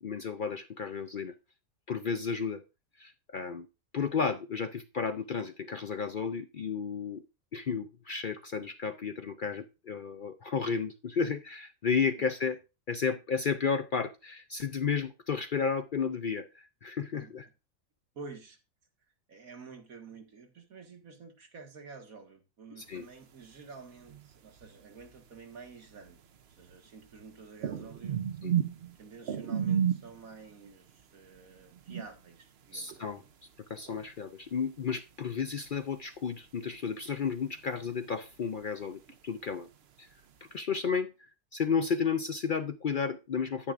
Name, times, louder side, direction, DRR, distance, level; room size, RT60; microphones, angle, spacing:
voice 1, 0.0-1.3 1.9-2.6 3.0-3.7 3.9-7.2 7.5-12.6 12.9-17.4 22.8-23.1 28.4-28.5 32.7-33.2 33.7-39.7 40.0-40.1 40.5-43.7, left 6 dB, 55° left, 9 dB, 0.6 m, -32 dB
voice 2, 18.2-18.6 19.3-26.2 26.5-28.2 29.0-33.3, right 4 dB, 85° right, 4 dB, 2.1 m, -50 dB
sound 1, 22.8-23.7 24.0-34.6 34.9-36.5 36.8-40.6, right 9 dB, 55° right, 0.9 m, -35 dB
10.0 x 9.9 x 2.5 m, 0.27 s
omnidirectional pair, 1.4 m